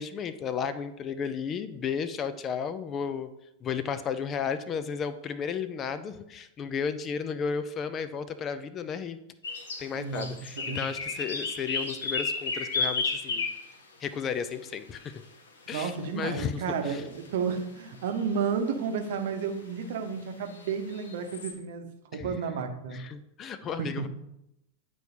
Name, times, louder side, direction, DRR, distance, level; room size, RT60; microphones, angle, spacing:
voice 1, 0.0-3.3 3.6-9.2 9.8-13.5 14.0-15.2 15.7-17.0 22.1-22.4 22.9-24.1, left 6 dB, 30° left, 12 dB, 0.4 m, -33 dB
sound 1, 9.4-9.9 10.1-13.7 15.0-15.1 16.3-16.4 17.3-17.4 17.6-17.7 18.2-18.3 19.8-19.9 20.5-21.5, left 4 dB, 65° left, 1.0 m, -32 dB
voice 2, 9.9-10.3 10.6-10.9 15.7-23.0 23.8-24.1, right 6 dB, 55° right, 6 dB, 0.8 m, -32 dB
9.1 x 4.6 x 2.8 m, 0.84 s
figure-of-eight pair, 90°, 0 cm